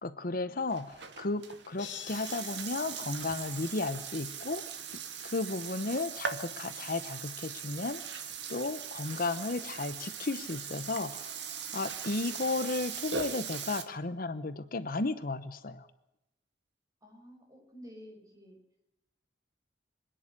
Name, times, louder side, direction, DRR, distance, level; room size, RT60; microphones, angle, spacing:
voice 1, 0.0-4.6 5.2-15.9, left 3 dB, 50° left, 13 dB, 0.9 m, -34 dB
Burping eructation, 0.7-13.8, right 7 dB, 75° right, 2.1 m, -40 dB
sound 1, 1.8-4.1, left 9 dB, 85° left, 2.9 m, -47 dB
voice 2, 17.0-18.6, equal, 20° right, 0 dB, 7.3 m, -51 dB
25.5 x 10.5 x 9.8 m, 0.89 s
head